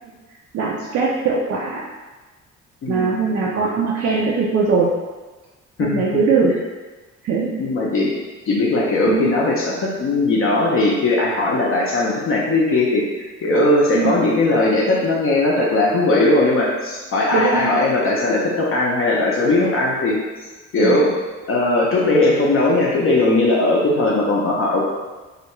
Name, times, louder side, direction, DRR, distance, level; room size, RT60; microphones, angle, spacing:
voice 1, 0.5-1.8 2.9-5.0 5.8-6.6 7.2-7.5 9.0-9.3 13.9-14.2 17.3-17.7 20.8-21.0, right 4 dB, 50° right, -4 dB, 0.4 m, -20 dB
voice 2, 2.8-3.1 5.8-6.2 7.6-8.1 8.5-20.2 20.7-21.1 21.5-24.9, left 2 dB, 45° left, -4 dB, 0.5 m, -18 dB
2.3 x 2.2 x 2.9 m, 1.3 s
cardioid pair, 90°, 30 cm